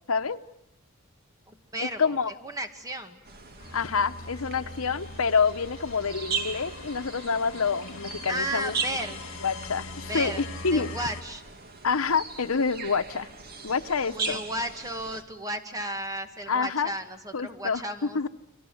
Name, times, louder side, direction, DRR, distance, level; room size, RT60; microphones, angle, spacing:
voice 1, 0.1-0.4 1.8-2.3 3.7-8.8 9.4-10.9 11.8-13.3 13.6-14.4 16.5-16.9 17.3-17.8 18.1-18.3, left 5 dB, 85° left, 9 dB, 1.0 m, -27 dB
voice 2, 1.5-3.2 8.3-9.3 10.1-10.4 10.7-11.4 14.0-18.2, right 1 dB, 15° right, 6 dB, 2.1 m, -34 dB
sound 1, 3.2-15.2, right 5 dB, 50° right, 2.5 m, -38 dB
sound 2, 3.6-11.2, left 3 dB, 65° left, 2.7 m, -42 dB
30.0 x 24.0 x 7.9 m, 0.86 s
head